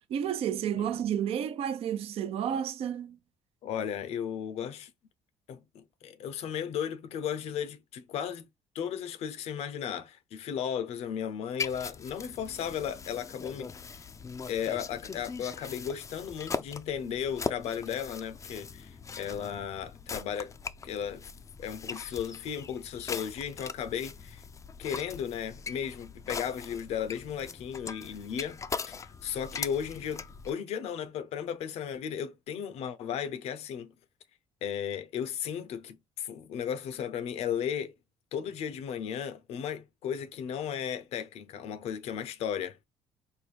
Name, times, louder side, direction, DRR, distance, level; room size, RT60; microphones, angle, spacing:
voice 1, 0.1-3.2, right 9 dB, 60° right, 0.6 m, -31 dB
voice 2, 3.6-4.9 5.5-8.5 8.7-13.7 14.5-20.5 20.8-21.3 21.6-24.4 24.8-28.6 28.9-29.0 29.2-33.9 34.6-37.9 38.3-42.8, left 8 dB, 70° left, 0.7 m, -35 dB
sound 1, 11.6-30.5, left 5 dB, 30° left, 0.4 m, -41 dB
4.5 x 2.2 x 3.3 m
cardioid pair, 90°, 11 cm